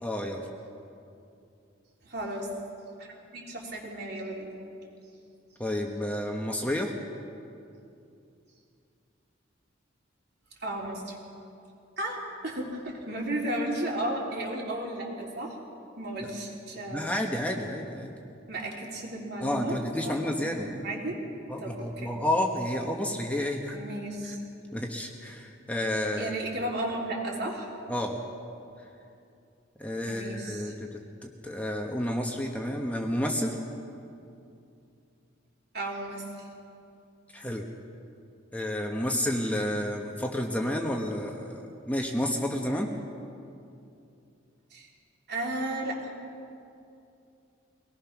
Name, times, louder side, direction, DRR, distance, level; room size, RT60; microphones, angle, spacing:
voice 1, 0.0-0.5 5.6-6.9 16.2-16.3 16.9-18.1 19.4-20.9 21.5-23.7 24.7-26.3 27.9-28.2 29.8-33.5 37.3-37.6 38.5-42.9, left 1 dB, 10° left, 1 dB, 1.2 m, -30 dB
voice 2, 2.1-2.5 3.0-4.5 10.6-11.2 12.0-15.6 16.0-17.1 18.5-19.8 20.0-21.2 21.6-22.1 23.7-24.4 26.2-27.7 30.1-30.7 35.7-36.5 44.7-44.9 45.3-46.1, right 1 dB, 55° right, -2 dB, 3.7 m, -34 dB
23.0 x 19.0 x 6.0 m, 2.6 s
head